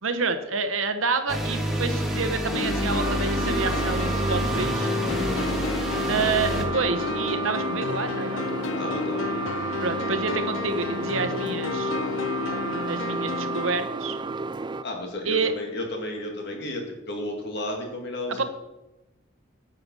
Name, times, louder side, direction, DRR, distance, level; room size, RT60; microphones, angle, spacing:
voice 1, 0.0-4.9 5.4-5.5 6.1-8.4 9.8-11.9 12.9-14.2 15.2-15.5 18.4-18.5, right 4 dB, 90° right, 9 dB, 1.1 m, -28 dB
sound 1, 1.3-6.6, equal, ahead, 1.7 m, -28 dB
sound 2, 2.5-13.7, left 6 dB, 85° left, 0.6 m, -32 dB
sound 3, 3.0-14.9, right 3 dB, 25° right, 0.3 m, -31 dB
voice 2, 8.8-9.3 14.8-18.4, left 1 dB, 60° left, 2 dB, 2.2 m, -33 dB
9.6 x 6.7 x 6.2 m, 1.0 s
head